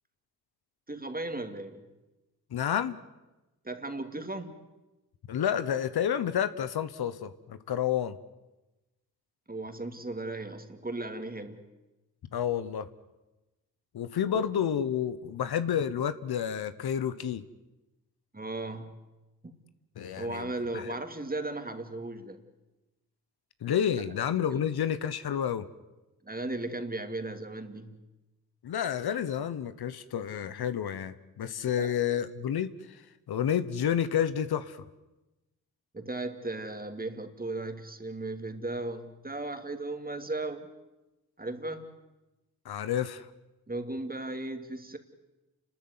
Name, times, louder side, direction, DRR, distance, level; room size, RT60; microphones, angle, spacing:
voice 1, 0.9-1.9 3.6-4.6 9.5-11.7 14.3-14.4 18.3-19.0 19.4-19.5 20.1-22.4 24.5-24.6 26.2-28.0 31.8-31.9 35.9-40.7 41.4-41.9 43.7-45.0, right 2 dB, 25° right, 7 dB, 2.7 m, -36 dB
voice 2, 2.5-2.9 5.3-8.1 12.3-12.9 13.9-17.4 20.0-21.0 23.6-25.6 28.6-32.7 33.3-34.8 42.6-43.3, left 9 dB, 80° left, 13 dB, 1.1 m, -30 dB
29.0 x 13.0 x 9.7 m, 1.0 s
cardioid pair, 50°, 37 cm